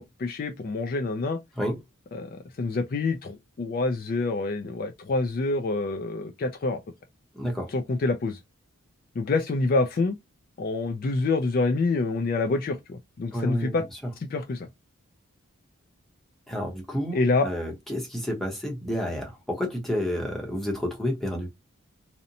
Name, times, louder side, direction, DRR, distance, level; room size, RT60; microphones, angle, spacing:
voice 1, 0.0-1.4 2.1-6.8 7.7-8.4 9.2-10.2 10.6-13.8 14.3-14.7 17.1-17.5, left 3 dB, 40° left, 0.3 m, -27 dB
voice 2, 7.3-7.7 13.3-14.0 16.5-21.5, equal, ahead, 0.7 m, -30 dB
2.7 x 2.1 x 2.5 m
head